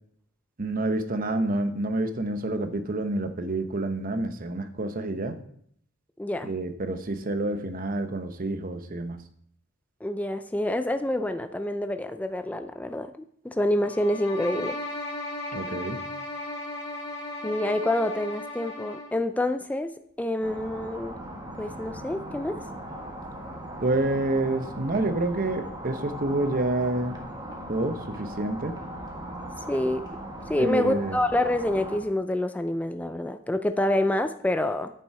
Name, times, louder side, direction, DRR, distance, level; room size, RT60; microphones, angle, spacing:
voice 1, 0.6-5.4 6.4-9.2 15.5-16.0 23.8-27.2 27.7-28.7 30.6-31.2, right 2 dB, 45° right, 8 dB, 0.9 m, -28 dB
voice 2, 6.2-6.5 10.0-13.1 13.4-14.8 17.4-19.9 20.2-21.2 21.6-22.6 29.7-30.1 30.5-34.9, left 1 dB, 5° left, 8 dB, 0.4 m, -27 dB
sound 1, 13.8-19.2, left 2 dB, 30° left, 3.2 m, -36 dB
sound 2, 20.4-32.0, equal, 20° right, 1.6 m, -38 dB
9.2 x 7.0 x 4.8 m, 0.67 s
head